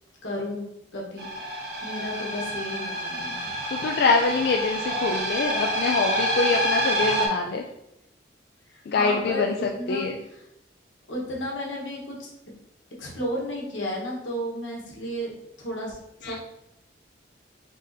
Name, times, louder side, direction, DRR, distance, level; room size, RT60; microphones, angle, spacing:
voice 1, 0.2-0.7 0.9-3.5 8.7-10.4 11.1-12.3 13.0-16.4, equal, 85° left, -2 dB, 1.2 m, -33 dB
sound 1, 1.2-7.3, equal, 55° right, 0.9 m, -27 dB
voice 2, 3.7-7.6 8.9-10.2 16.2-16.4, left 4 dB, 60° left, 2 dB, 0.3 m, -25 dB
3.6 x 2.6 x 4.0 m, 0.83 s
head